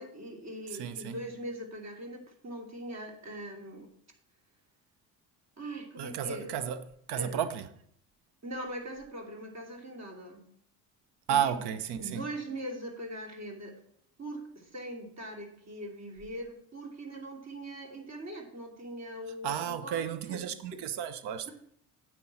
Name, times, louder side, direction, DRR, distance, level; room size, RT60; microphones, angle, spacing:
voice 1, 0.0-3.9 5.6-6.6 7.2-7.4 8.4-10.4 11.3-11.6 12.0-13.8 14.2-20.4 20.7-20.8, right 1 dB, 35° right, 2.9 m, -41 dB
voice 2, 0.7-1.2 6.0-6.8 7.1-7.7 11.3-12.3 19.4-21.5, right 9 dB, 60° right, 1.0 m, -32 dB
9.4 x 7.9 x 4.2 m
hypercardioid pair, 55°, 44 cm